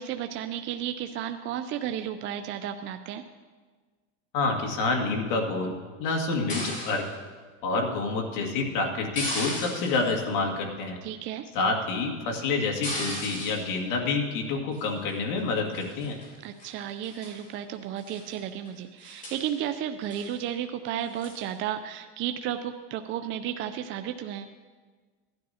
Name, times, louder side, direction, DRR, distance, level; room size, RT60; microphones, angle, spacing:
voice 1, 0.0-3.2 11.0-11.5 16.4-24.5, right 10 dB, 35° right, 8 dB, 0.4 m, -33 dB
voice 2, 4.3-7.0 7.6-11.0 11.5-16.2, left 3 dB, 55° left, 0 dB, 2.2 m, -28 dB
sound 1, 6.5-7.1 9.1-10.1 12.8-13.7 14.7-15.1 15.7-16.3 16.6-16.7 17.0-17.4 18.0-18.4 18.7-18.8 19.0-19.5 20.1-20.3 21.2-21.5, left 1 dB, 20° left, 3.9 m, -36 dB
17.0 x 11.5 x 2.8 m, 1.4 s
supercardioid pair, 125°, 38 cm